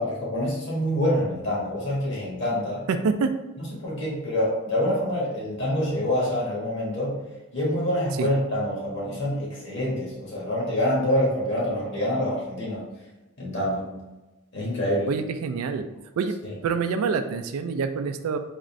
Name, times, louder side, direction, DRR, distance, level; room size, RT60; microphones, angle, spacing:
voice 1, 0.0-2.8 3.6-7.2 7.5-12.8 13.4-13.9 14.5-15.1, left 1 dB, 55° left, -5 dB, 1.3 m, -26 dB
voice 2, 2.9-3.3 8.2-8.3 15.1-15.9 16.2-16.4 16.6-18.4, right 5 dB, 85° right, 9 dB, 0.3 m, -26 dB
3.6 x 2.5 x 3.1 m, 1.1 s
head